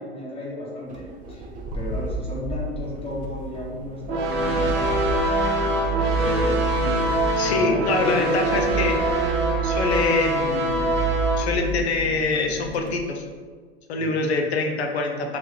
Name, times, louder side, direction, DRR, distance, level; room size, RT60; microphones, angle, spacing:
voice 1, 0.0-1.5 1.7-5.3 6.2-8.3 14.0-14.3, left 1 dB, 15° left, -6 dB, 1.3 m, -34 dB
sound 1, 0.9-13.0, right 4 dB, 25° right, 0.5 m, -30 dB
sound 2, 4.1-11.4, right 1 dB, 70° right, 0.7 m, -24 dB
voice 2, 7.4-9.0 9.6-11.0 11.4-13.2 13.9-15.4, left 3 dB, 80° left, 3 dB, 0.6 m, -25 dB
3.0 x 2.4 x 3.3 m, 1.5 s
hypercardioid pair, 90°, 32 cm